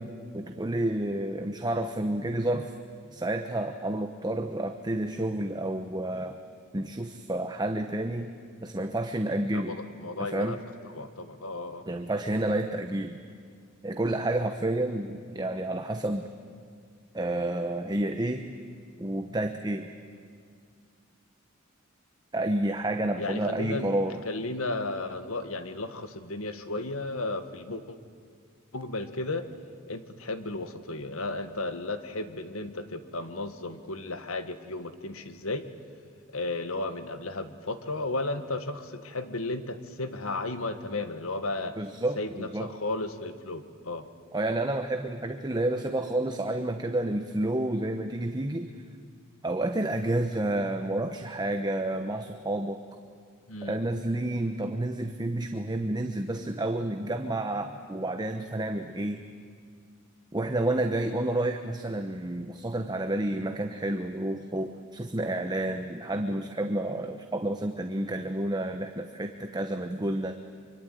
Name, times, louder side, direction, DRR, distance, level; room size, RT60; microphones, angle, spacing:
voice 1, 0.0-2.7 3.1-6.4 6.7-8.3 8.6-9.8 10.2-10.6 11.9-13.2 13.8-16.3 17.1-18.4 19.0-19.9 22.3-24.2 41.8-42.7 44.3-48.7 49.4-52.8 53.6-59.2 60.3-70.4, right 1 dB, 20° right, 6 dB, 1.1 m, -30 dB
voice 2, 9.5-10.6 10.9-11.8 23.2-23.9 24.2-28.0 28.7-29.5 29.9-35.7 36.3-41.8 42.2-44.1 53.5-53.8, left 2 dB, 85° left, 9 dB, 1.8 m, -34 dB
24.5 x 24.5 x 9.3 m, 2.1 s
head